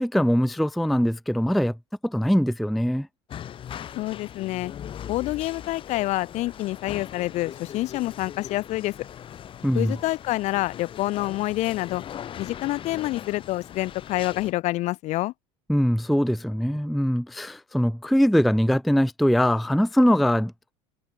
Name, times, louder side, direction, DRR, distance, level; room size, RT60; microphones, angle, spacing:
voice 1, 0.0-1.8 2.0-3.1 9.6-10.0 15.7-20.7, equal, ahead, 0.3 m, -22 dB
sound 1, 3.3-14.5, left 10 dB, 40° left, 1.7 m, -40 dB
voice 2, 4.0-4.7 5.1-8.9 9.7-12.0 12.4-15.3, left 18 dB, 55° left, 1.0 m, -27 dB
supercardioid pair, 95°, 14 cm